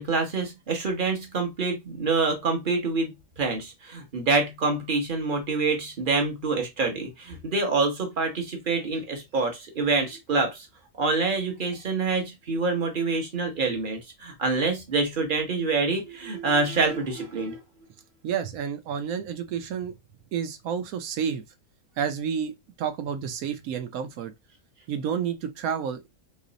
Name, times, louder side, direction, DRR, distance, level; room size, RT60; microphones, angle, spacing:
voice 1, 0.0-10.7 11.0-17.6, right 3 dB, 40° right, 1.0 m, -26 dB
voice 2, 18.2-19.9 20.3-21.4 22.0-22.5 22.8-24.3 24.9-26.1, right 7 dB, 70° right, 1.1 m, -30 dB
3.2 x 3.0 x 3.9 m
omnidirectional pair, 1.6 m